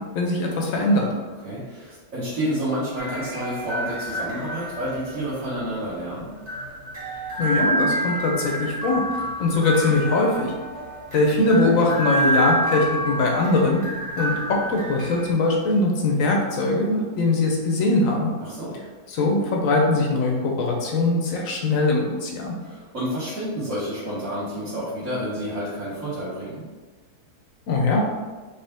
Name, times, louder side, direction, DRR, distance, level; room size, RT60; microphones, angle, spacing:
voice 1, 0.1-1.1 7.4-9.0 9.4-10.5 11.1-13.8 14.2-18.3 19.1-22.5 27.7-28.0, left 2 dB, 60° left, 0 dB, 1.0 m, -21 dB
voice 2, 1.4-6.3 18.4-18.7 22.6-26.7, equal, 50° right, -11 dB, 1.5 m, -29 dB
sound 1, 3.0-15.3, right 2 dB, 25° right, 1.4 m, -29 dB
4.3 x 3.2 x 3.4 m, 1.3 s
omnidirectional pair, 1.8 m